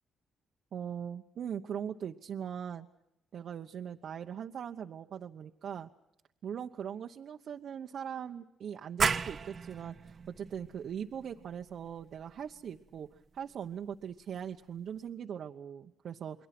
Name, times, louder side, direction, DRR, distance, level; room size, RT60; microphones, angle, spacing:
voice 1, 0.7-2.9 3.3-5.9 6.4-16.5, right 8 dB, 60° right, 2 dB, 1.0 m, -40 dB
sound 1, 9.0-14.4, right 5 dB, 40° right, 1.1 m, -37 dB
29.5 x 22.0 x 6.0 m, 0.82 s
cardioid pair, 90°, 0 cm